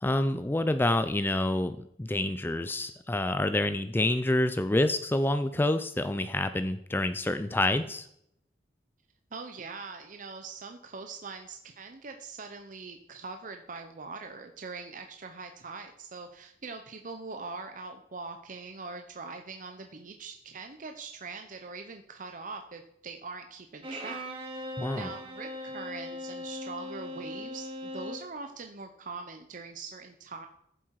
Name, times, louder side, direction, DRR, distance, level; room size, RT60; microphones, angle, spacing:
voice 1, 0.0-8.1 24.8-25.1, left 1 dB, 10° left, 10 dB, 0.4 m, -27 dB
voice 2, 9.3-24.3 24.9-30.5, right 4 dB, 50° right, 5 dB, 0.8 m, -42 dB
Bowed string instrument, 23.8-28.3, left 1 dB, 30° right, 2.2 m, -39 dB
14.0 x 7.6 x 4.7 m, 0.74 s
head